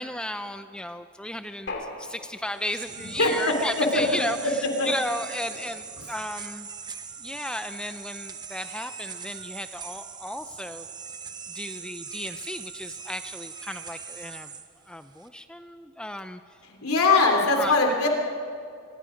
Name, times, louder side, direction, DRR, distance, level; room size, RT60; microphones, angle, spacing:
voice 1, 0.0-6.7 7.2-10.9 11.5-14.5 14.9-16.4 17.1-17.2 17.6-17.7, left 1 dB, 5° left, 9 dB, 0.5 m, -34 dB
sound 1, 1.7-2.7 3.9-4.8, left 2 dB, 50° left, 2.4 m, -39 dB
sound 2, 2.4-15.3, right 6 dB, 20° right, 0.9 m, -41 dB
voice 2, 3.2-3.5 3.9-4.0 4.8-4.9 16.7-18.1, left 3 dB, 85° left, 2 dB, 3.3 m, -21 dB
25.5 x 21.0 x 5.2 m, 2.4 s
head